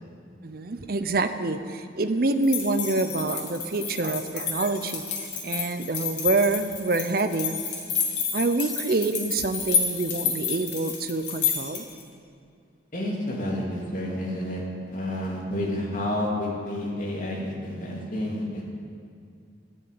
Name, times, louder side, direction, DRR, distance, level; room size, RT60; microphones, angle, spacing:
voice 1, 0.4-7.6 8.3-11.9, right 3 dB, 55° right, 9 dB, 0.7 m, -26 dB
sound 1, 2.4-12.0, left 6 dB, 75° left, 2.7 m, -30 dB
voice 2, 12.9-14.6 14.9-18.6, left 1 dB, 45° left, -3 dB, 2.7 m, -30 dB
11.5 x 9.7 x 8.6 m, 2.3 s
head